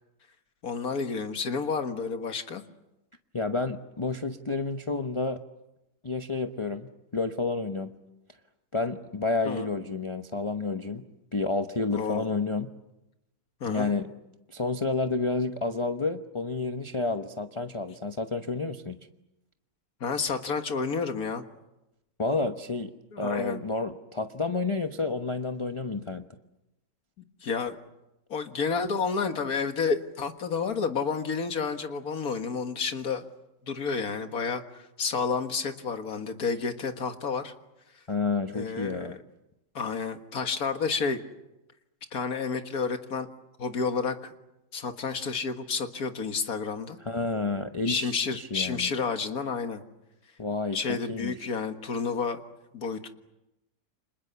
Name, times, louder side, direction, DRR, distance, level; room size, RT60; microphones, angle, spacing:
voice 1, 0.6-2.6 9.5-9.7 11.9-12.3 13.6-13.9 20.0-21.4 23.1-23.6 27.4-27.8 28.3-33.3 33.6-37.5 38.5-39.2 39.7-41.2 42.1-43.3 43.6-44.3 44.7-47.0 47.9-49.8 50.7-52.4 52.7-53.1, left 5 dB, 55° left, 7 dB, 2.1 m, -30 dB
voice 2, 3.3-5.4 6.0-7.9 8.7-11.0 11.3-12.7 13.6-14.1 14.5-19.0 22.2-22.9 23.2-26.3 38.1-39.2 47.0-48.9 50.4-51.5, left 3 dB, 25° left, 7 dB, 0.8 m, -30 dB
30.0 x 26.5 x 6.9 m, 0.94 s
omnidirectional pair, 1.9 m